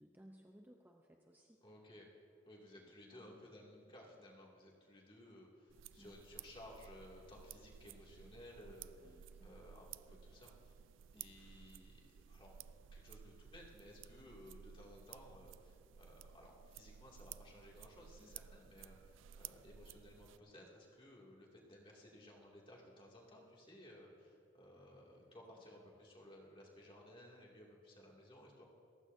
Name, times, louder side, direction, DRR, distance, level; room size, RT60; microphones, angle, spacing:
voice 1, 0.0-1.6 2.7-3.9 6.0-6.2 8.7-9.7 11.1-11.3 18.2-18.4, equal, 10° right, 1 dB, 0.7 m, -63 dB
voice 2, 1.6-2.1 2.5-10.8 11.1-12.5 12.9-28.6, left 1 dB, 25° left, -2 dB, 2.5 m, -58 dB
sound 1, 5.7-20.4, right 9 dB, 70° right, 0.3 m, -56 dB
29.0 x 15.0 x 2.7 m, 2.7 s
head